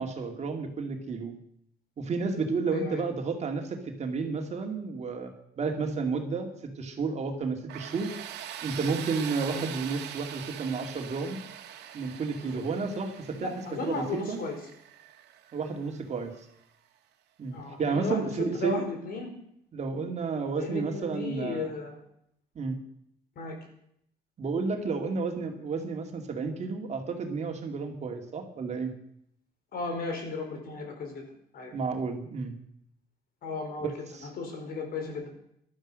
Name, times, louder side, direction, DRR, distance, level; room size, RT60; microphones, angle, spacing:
voice 1, 0.0-1.3 2.0-6.5 6.8-8.1 8.6-11.4 11.9-13.5 13.8-14.4 15.5-16.3 17.4-18.8 19.7-21.7 22.5-22.8 24.4-28.9 31.7-32.5 33.8-34.3, right 4 dB, 40° right, 4 dB, 2.5 m, -31 dB
voice 2, 2.7-3.1 9.5-9.7 12.4-12.6 13.4-14.6 17.5-19.3 20.6-22.0 23.4-23.5 29.7-31.2 31.5-31.7 33.4-33.9 34.2-35.3, left 3 dB, 60° left, 4 dB, 4.8 m, -35 dB
Tools, 7.7-16.5, right 10 dB, 80° right, 2.0 m, -43 dB
14.5 x 12.0 x 6.4 m, 0.73 s
cardioid pair, 110°, 17 cm